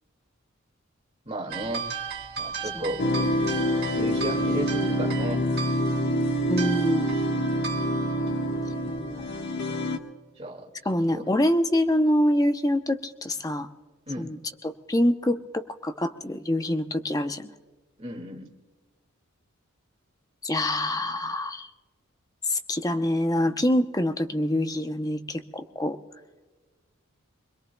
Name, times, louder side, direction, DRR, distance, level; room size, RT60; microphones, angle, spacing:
voice 1, 1.3-1.9 2.4-3.0 3.9-5.4 10.4-10.7 11.1-11.3 14.1-14.3 18.0-18.5, right 1 dB, 30° right, 1 dB, 2.0 m, -34 dB
sound 1, 1.5-9.4, right 6 dB, 45° right, 1.7 m, -36 dB
sound 2, 3.0-10.0, equal, 55° left, 1.3 m, -26 dB
voice 2, 6.5-7.1 8.9-9.3 10.9-13.7 14.2-14.4 14.6-17.5 20.4-21.7 22.5-26.0, left 1 dB, 15° left, 8 dB, 0.7 m, -25 dB
25.0 x 21.5 x 2.2 m, 1.3 s
head